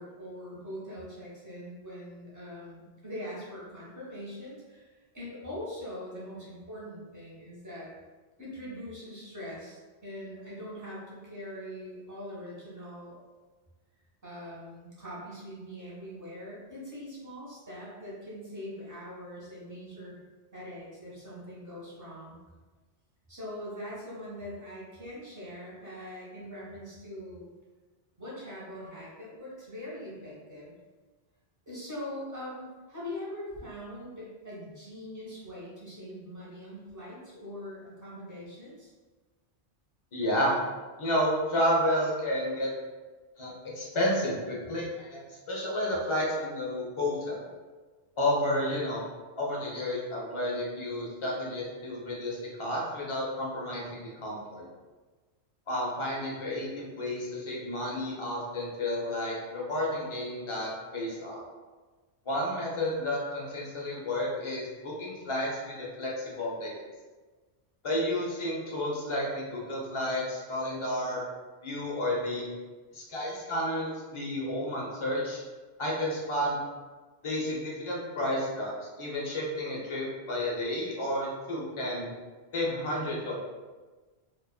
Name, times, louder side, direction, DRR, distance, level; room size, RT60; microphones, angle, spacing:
voice 1, 0.0-7.9 8.4-13.2 14.2-20.1 20.5-22.4 23.3-27.5 28.2-30.7 31.7-38.9, equal, 20° right, -8 dB, 0.6 m, -42 dB
voice 2, 40.1-40.5 41.0-42.7 43.4-45.2 45.5-47.5 48.2-49.1 49.4-54.7 55.7-61.4 62.3-66.8 67.8-71.3 71.6-72.5 72.9-75.4 75.8-76.6 77.2-82.1 82.5-83.4, left 1 dB, 45° left, -4 dB, 0.4 m, -31 dB
2.4 x 2.4 x 2.2 m, 1.3 s
omnidirectional pair, 1.2 m